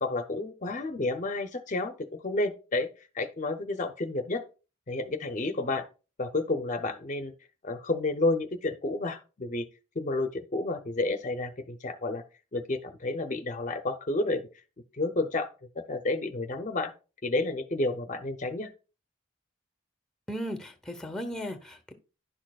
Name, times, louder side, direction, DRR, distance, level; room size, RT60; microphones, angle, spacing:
voice 1, 0.0-4.4 4.9-5.8 6.2-7.3 7.6-9.7 10.0-12.2 12.5-14.5 14.9-15.5 15.9-16.9 17.2-18.7, left 2 dB, 40° left, 0.6 m, -30 dB
voice 2, 20.3-21.9, equal, 5° left, 0.8 m, -36 dB
10.5 x 6.4 x 2.3 m
head